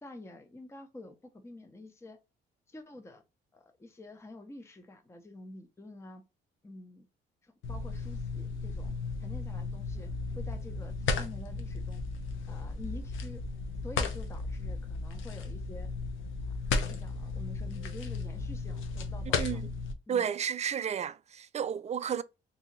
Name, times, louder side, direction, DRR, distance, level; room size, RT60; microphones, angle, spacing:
voice 1, 0.0-2.2 2.7-3.2 3.5-6.2 6.6-7.1 7.4-8.9 9.2-10.1 10.4-12.0 12.5-13.4 13.8-15.9 16.5-19.6 20.1-20.3, left 2 dB, 15° left, 0.6 m, -48 dB
sound 1, 7.6-19.9, left 4 dB, 80° left, 0.7 m, -35 dB
voice 2, 20.1-22.2, right 8 dB, 35° right, 0.3 m, -32 dB
2.7 x 2.7 x 3.8 m
cardioid pair, 90°, 20 cm